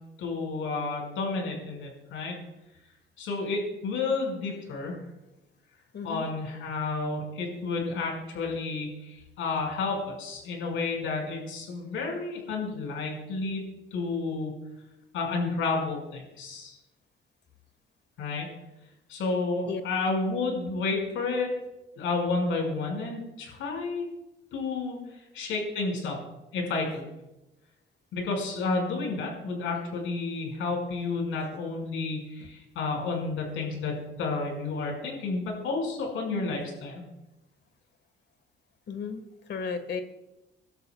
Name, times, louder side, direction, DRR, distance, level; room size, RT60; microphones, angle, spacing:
voice 1, 0.2-2.3 3.2-5.0 6.0-13.6 13.9-14.5 15.1-16.8 18.2-18.5 19.1-21.5 22.0-24.1 24.5-25.0 25.3-26.2 26.5-27.0 28.1-37.0, left 3 dB, 85° left, 0 dB, 5.4 m, -31 dB
voice 2, 5.9-6.3 19.7-19.8 38.9-39.2 39.5-40.0, left 6 dB, 60° left, 9 dB, 1.6 m, -34 dB
26.5 x 12.0 x 2.3 m, 0.98 s
cardioid pair, 90°, 20 cm